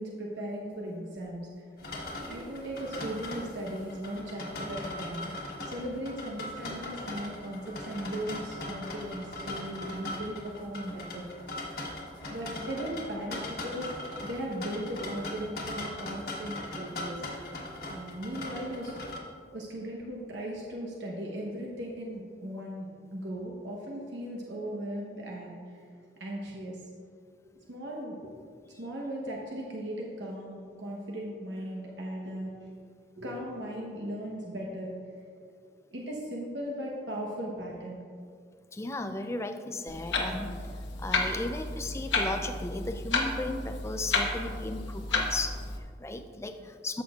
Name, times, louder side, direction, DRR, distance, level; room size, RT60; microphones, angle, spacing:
voice 1, 0.0-1.6 2.3-11.3 12.2-13.9 14.2-17.2 17.6-18.9 19.5-26.8 27.4-28.2 28.8-32.8 33.2-35.6 35.9-38.0, right 1 dB, 75° right, -2 dB, 1.0 m, -38 dB
sound 1, 1.8-19.2, left 1 dB, 55° left, 1.4 m, -39 dB
voice 2, 38.7-47.0, left 2 dB, 15° left, 8 dB, 0.3 m, -36 dB
Clock, 39.9-45.8, left 3 dB, 85° left, 1.1 m, -32 dB
14.0 x 6.2 x 2.4 m, 2.1 s
head